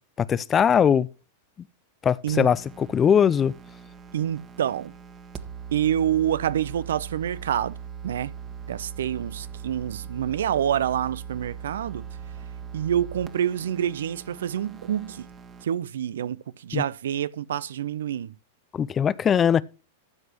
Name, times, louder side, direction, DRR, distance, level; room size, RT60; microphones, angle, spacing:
voice 1, 0.2-1.1 2.0-3.5 16.7-16.8 18.7-19.6, left 8 dB, 25° left, 0.5 m, -20 dB
sound 1, 2.3-15.6, right 7 dB, 25° right, 1.4 m, -40 dB
voice 2, 4.1-4.9 5.7-7.8 8.0-8.3 8.7-12.1 12.7-15.3 15.6-18.3, right 10 dB, 75° right, 0.6 m, -27 dB
13.0 x 8.0 x 3.0 m
hypercardioid pair, 110°, 0 cm